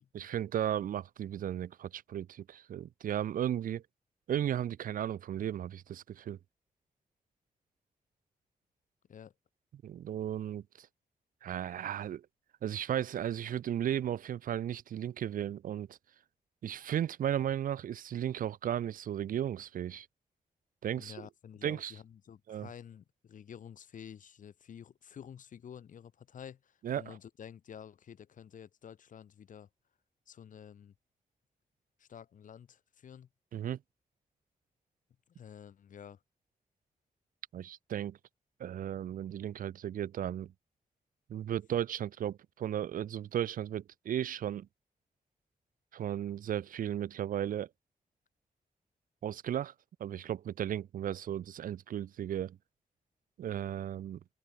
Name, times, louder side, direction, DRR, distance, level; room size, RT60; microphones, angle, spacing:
voice 1, 0.1-3.8 4.3-6.4 9.7-10.9 11.4-12.3 12.6-16.0 16.6-20.1 20.8-21.1 21.6-21.9 22.5-22.7 26.8-27.1 33.5-33.8 37.5-38.2 38.6-40.5 41.3-44.7 45.9-47.7 49.2-49.7 50.0-52.6 53.4-54.2, right 10 dB, 70° right, 0.4 m, -35 dB
voice 2, 20.9-29.7 30.3-30.9 32.0-33.3 35.3-36.2, left 8 dB, 60° left, 0.6 m, -50 dB
cardioid pair, 80°, 15 cm